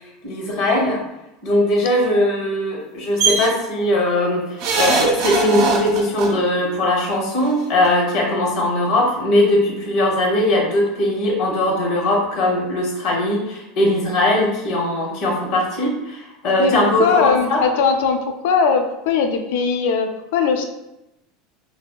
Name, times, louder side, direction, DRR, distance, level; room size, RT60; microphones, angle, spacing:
voice 1, 0.2-1.0 1.4-17.6, left 1 dB, 60° left, 0 dB, 0.7 m, -20 dB
sound 1, 3.2-3.5 4.6-6.3 7.5-7.6 7.9-8.0, right 4 dB, 65° right, 0.5 m, -20 dB
voice 2, 17.0-18.2 18.4-20.7, left 5 dB, 75° left, 5 dB, 0.3 m, -19 dB
2.6 x 2.2 x 2.2 m, 0.91 s
supercardioid pair, 130°, 0 cm